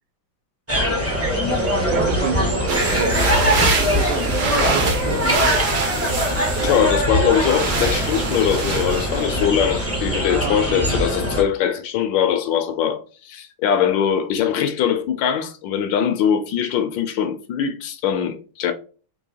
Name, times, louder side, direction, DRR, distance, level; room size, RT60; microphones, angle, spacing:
sound 1, 0.7-11.4, equal, 15° right, 0.5 m, -22 dB
voice 1, 1.7-5.4 10.3-10.8, right 7 dB, 80° right, 1.4 m, -31 dB
sound 2, 2.7-7.0 7.3-9.5, right 3 dB, 65° right, 1.7 m, -25 dB
voice 2, 6.6-18.7, left 8 dB, 75° left, 1.2 m, -21 dB
4.6 x 2.8 x 2.7 m
omnidirectional pair, 2.2 m